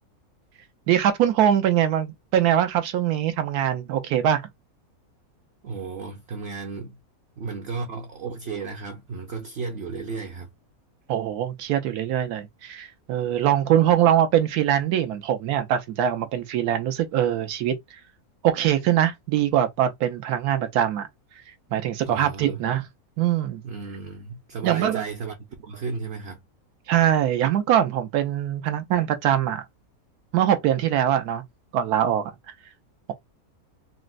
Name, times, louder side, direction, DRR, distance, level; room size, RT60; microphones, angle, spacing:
voice 1, 0.9-4.4 11.1-17.7 18.4-21.1 21.7-22.8 23.2-23.6 24.6-25.0 26.9-29.6 30.3-31.4 31.7-32.3, right 10 dB, 85° right, 1.2 m, -22 dB
voice 2, 5.6-7.0 7.4-10.5 22.0-22.6 23.6-26.4, right 4 dB, 60° right, 0.7 m, -34 dB
4.1 x 2.0 x 2.4 m
omnidirectional pair, 1.6 m